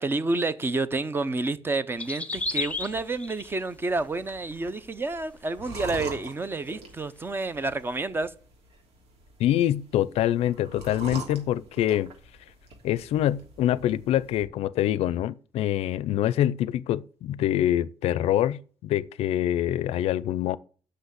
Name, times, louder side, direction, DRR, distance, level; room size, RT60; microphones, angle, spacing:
voice 1, 0.0-8.3, right 3 dB, 20° right, 0.7 m, -29 dB
sound 1, 2.0-3.7 4.2-4.7 5.1-5.2 6.0-6.1 6.4-6.5 7.4-7.5, left 3 dB, 15° left, 0.8 m, -32 dB
sound 2, 2.4-14.4, right 3 dB, 85° right, 3.0 m, -44 dB
voice 2, 9.4-12.1 12.8-20.6, left 12 dB, 80° left, 0.4 m, -25 dB
8.0 x 6.4 x 8.0 m
cardioid pair, 135°, 10 cm